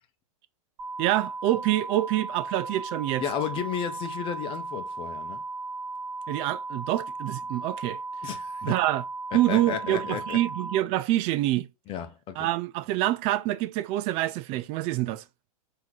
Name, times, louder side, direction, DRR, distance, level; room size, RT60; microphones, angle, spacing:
sound 1, 0.8-10.8, right 3 dB, 75° right, 1.1 m, -36 dB
voice 1, 1.0-3.2 6.3-8.0 8.6-9.0 9.3-11.7 12.4-15.2, right 15 dB, 30° right, 0.4 m, -26 dB
voice 2, 3.2-5.4 8.2-8.8 9.3-10.4 11.9-12.5, left 8 dB, 30° left, 0.8 m, -33 dB
4.6 x 2.9 x 3.8 m
hypercardioid pair, 120°, 19 cm